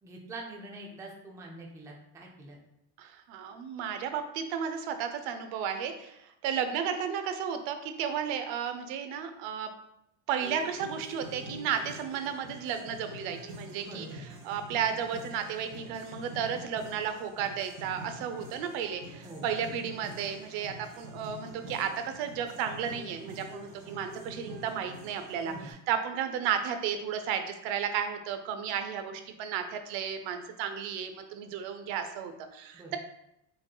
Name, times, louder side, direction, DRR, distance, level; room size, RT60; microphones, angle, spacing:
voice 1, 0.0-2.6 13.8-14.3 19.2-19.5 25.5-25.7 32.7-33.0, right 1 dB, 10° right, 0 dB, 0.3 m, -44 dB
voice 2, 3.0-9.7 10.3-33.0, right 8 dB, 85° right, 8 dB, 0.6 m, -33 dB
sound 1, 10.4-25.7, equal, 55° right, 1.4 m, -46 dB
5.0 x 2.9 x 2.3 m, 0.81 s
cardioid pair, 130°, 45 cm